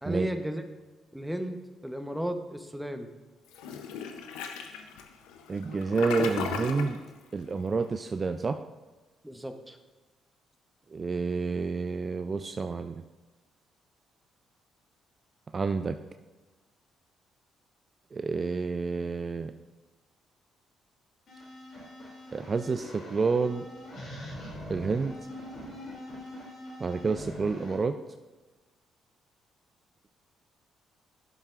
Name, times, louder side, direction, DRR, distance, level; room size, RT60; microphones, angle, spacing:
voice 1, 0.0-0.6 1.1-3.1 9.2-9.8, equal, 5° right, 6 dB, 0.9 m, -34 dB
Toilet flush, 3.5-7.0, left 6 dB, 90° left, 0.6 m, -36 dB
voice 2, 5.5-7.0 7.3-8.6 10.9-13.0 15.5-16.0 18.1-19.5 22.3-23.7 24.7-25.1 26.8-28.0, right 4 dB, 40° right, 9 dB, 0.4 m, -29 dB
sound 1, 21.3-27.8, left 1 dB, 60° left, 2.7 m, -43 dB
11.0 x 7.2 x 2.5 m, 1.2 s
supercardioid pair, 60°, 0 cm